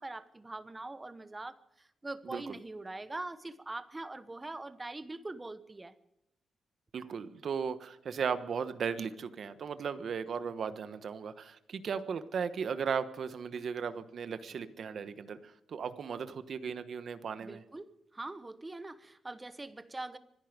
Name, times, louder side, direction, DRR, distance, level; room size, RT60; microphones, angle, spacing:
voice 1, 0.0-5.9 17.4-20.2, right 2 dB, 20° right, 12 dB, 1.1 m, -43 dB
voice 2, 6.9-17.6, right 6 dB, 60° right, 11 dB, 1.2 m, -36 dB
25.0 x 10.5 x 5.2 m, 0.83 s
cardioid pair, 115°, 0 cm